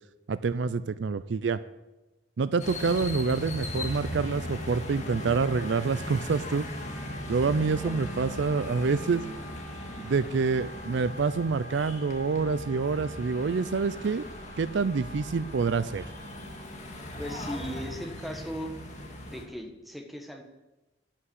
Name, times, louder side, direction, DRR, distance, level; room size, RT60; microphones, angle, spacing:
voice 1, 0.3-1.6 2.4-6.7 7.3-9.2 10.0-14.2 14.6-16.1, right 4 dB, 65° right, 14 dB, 0.4 m, -27 dB
sound 1, 2.6-19.4, left 1 dB, 35° left, 2.0 m, -38 dB
Wind instrument woodwind instrument, 4.2-18.3, equal, 85° left, 3.7 m, -48 dB
voice 2, 17.2-18.7 19.2-20.4, equal, ahead, 3 dB, 1.2 m, -37 dB
13.0 x 5.9 x 9.6 m, 1.0 s
head